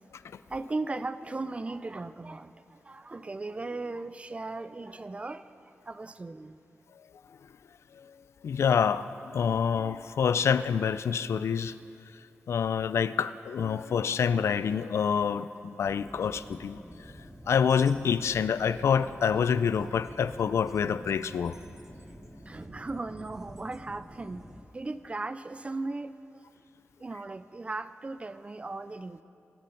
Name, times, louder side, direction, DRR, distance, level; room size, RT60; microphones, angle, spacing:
voice 1, 0.5-6.6 22.5-24.4 24.7-26.4 27.0-29.2, right 3 dB, 25° right, 13 dB, 0.4 m, -37 dB
voice 2, 8.4-9.0 9.3-11.7 12.5-16.8 17.5-21.5, left 7 dB, 80° left, 14 dB, 0.4 m, -27 dB
sound 1, 15.8-24.6, equal, 10° right, 1.2 m, -48 dB
21.0 x 7.5 x 5.5 m, 2.7 s
wide cardioid pair, 105°, 5 cm